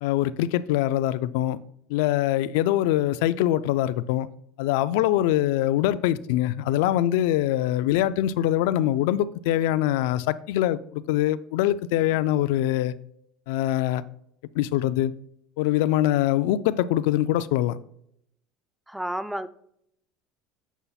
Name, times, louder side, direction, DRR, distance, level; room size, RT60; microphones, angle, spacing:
voice 1, 0.0-1.6 1.9-4.3 4.6-12.9 13.5-14.0 14.6-15.1 15.6-17.8, left 13 dB, 80° left, 0.3 m, -23 dB
voice 2, 18.9-19.5, right 1 dB, 5° right, 0.4 m, -30 dB
8.0 x 5.5 x 2.3 m
supercardioid pair, 110°, 0 cm